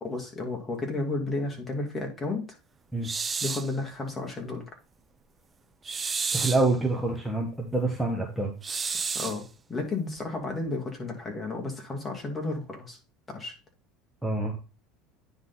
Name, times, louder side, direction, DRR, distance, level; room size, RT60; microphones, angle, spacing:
voice 1, 0.0-2.5 3.4-4.7 9.1-13.0 13.3-13.5, left 2 dB, 20° left, 0 dB, 2.4 m, -32 dB
sound 1, 3.0-3.7 5.8-6.7 8.6-9.4, right 5 dB, 20° right, 0.5 m, -31 dB
voice 2, 6.3-8.5 14.2-14.5, right 2 dB, ahead, -1 dB, 1.4 m, -26 dB
9.7 x 3.8 x 4.0 m, 0.33 s
supercardioid pair, 115°, 0 cm